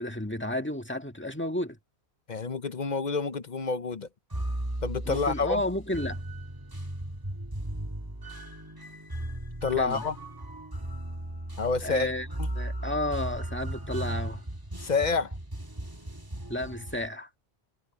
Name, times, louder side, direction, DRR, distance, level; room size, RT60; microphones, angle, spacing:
voice 1, 0.0-1.8 5.0-6.2 9.8-10.0 11.8-12.3 12.5-14.4 16.5-17.3, left 1 dB, 10° left, 1.8 m, -32 dB
voice 2, 2.3-4.1 4.8-5.6 9.6-10.2 11.6-12.1 14.8-15.3, left 4 dB, 45° left, 0.9 m, -28 dB
sound 1, 4.3-17.1, right 1 dB, 20° right, 1.8 m, -36 dB
omnidirectional pair, 1.1 m